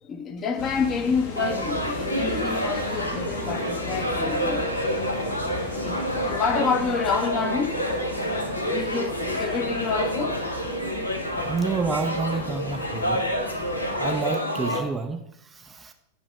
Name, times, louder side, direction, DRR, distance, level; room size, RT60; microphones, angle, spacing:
voice 1, 0.0-4.9 5.8-8.1 8.3-10.4, left 5 dB, 30° left, 0.8 m, -28 dB
sound 1, 0.6-14.2, left 3 dB, 55° left, 1.2 m, -38 dB
sound 2, 1.3-14.8, equal, 85° left, 0.8 m, -28 dB
voice 2, 11.5-13.3 14.0-15.9, right 4 dB, 15° right, 0.4 m, -29 dB
8.1 x 3.0 x 6.1 m
figure-of-eight pair, 90°, 0 cm